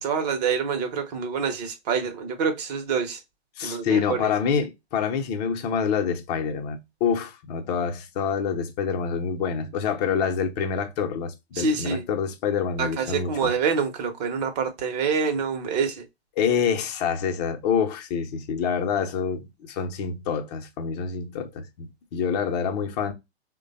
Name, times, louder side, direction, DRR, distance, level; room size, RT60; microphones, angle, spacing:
voice 1, 0.0-3.2 3.6-4.3 11.5-12.1 12.8-16.1, right 5 dB, 40° right, 0.8 m, -26 dB
voice 2, 3.6-13.4 16.4-23.1, left 7 dB, 40° left, 0.8 m, -27 dB
3.2 x 2.2 x 4.0 m
figure-of-eight pair, 115°, 32 cm